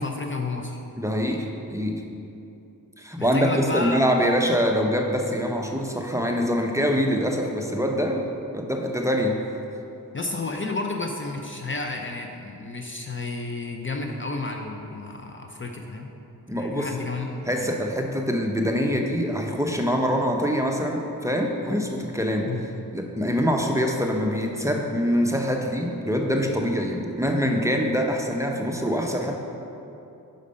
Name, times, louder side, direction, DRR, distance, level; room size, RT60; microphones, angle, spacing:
voice 1, 0.0-0.8 3.2-4.0 10.1-16.1 16.5-17.7 22.5-22.6, left 3 dB, 30° left, 2 dB, 0.6 m, -31 dB
voice 2, 1.0-2.0 3.0-8.3 8.5-9.3 16.5-16.9 17.5-22.5 22.9-29.4, equal, 10° right, 1 dB, 0.7 m, -24 dB
5.3 x 4.9 x 5.4 m, 2.8 s
cardioid pair, 50°, 38 cm